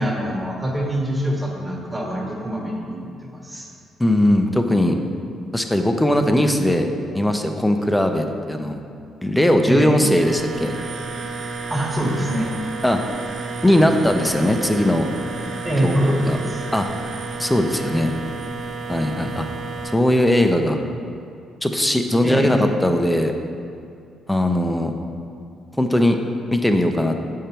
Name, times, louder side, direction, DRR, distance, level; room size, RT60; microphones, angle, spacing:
voice 1, 0.0-3.7 9.6-10.0 11.7-12.5 15.6-16.6 22.2-22.6, right 1 dB, 15° right, -2 dB, 1.5 m, -24 dB
voice 2, 4.0-5.0 5.5-6.9 7.1-8.8 9.2-10.7 12.8-13.0 13.6-15.1 15.8-16.4 16.7-16.9 17.4-18.1 18.9-19.5 19.9-20.8 21.6-23.3 24.3-24.9 25.8-26.2 26.5-27.2, left 1 dB, 5° left, 5 dB, 0.6 m, -19 dB
sound 1, 10.2-19.9, right 4 dB, 75° right, 0.8 m, -31 dB
7.6 x 5.2 x 4.4 m, 2.5 s
cardioid pair, 90°, 0 cm